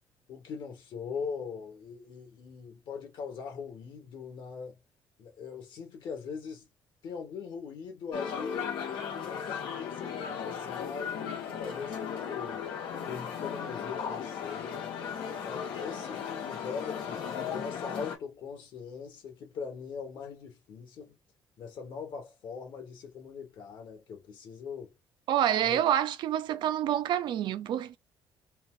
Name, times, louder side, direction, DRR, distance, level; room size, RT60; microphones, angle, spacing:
voice 1, 0.3-4.8 5.2-6.7 7.0-8.7 9.1-12.6 13.1-14.9 15.2-21.1 21.6-24.9 25.6-25.8, left 6 dB, 60° left, 2.0 m, -41 dB
sound 1, 8.1-18.2, left 7 dB, 90° left, 2.0 m, -36 dB
voice 2, 25.3-28.0, right 11 dB, 65° right, 0.5 m, -27 dB
3.9 x 2.6 x 3.9 m
cardioid pair, 150°, 9 cm